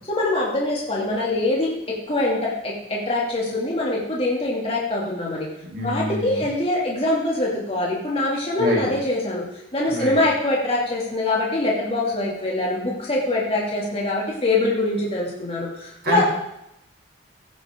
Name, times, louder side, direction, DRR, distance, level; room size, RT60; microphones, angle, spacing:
voice 1, 0.1-5.5 5.8-16.2, left 2 dB, 35° left, -4 dB, 2.6 m, -24 dB
voice 2, 5.7-6.4 8.6-8.9 9.9-10.2 16.0-16.2, equal, 60° right, -2 dB, 3.1 m, -26 dB
15.5 x 10.0 x 3.7 m, 0.81 s
head